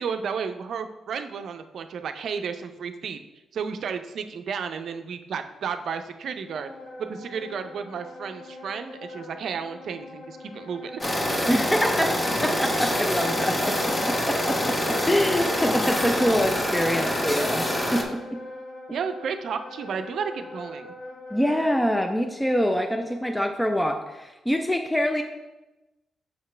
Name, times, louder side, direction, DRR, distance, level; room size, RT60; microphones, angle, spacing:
voice 1, 0.0-3.2 3.5-6.7 7.1-11.0 18.9-20.9, right 6 dB, 70° right, 8 dB, 0.5 m, -32 dB
Wind instrument woodwind instrument, 6.4-21.9, left 1 dB, 80° left, 1.2 m, -42 dB
sound 1, 11.0-18.0, left 1 dB, 25° left, 1.1 m, -26 dB
voice 2, 11.5-18.4 21.3-25.2, equal, 10° left, 4 dB, 0.5 m, -25 dB
5.9 x 5.7 x 3.2 m, 1.0 s
supercardioid pair, 60°, 0 cm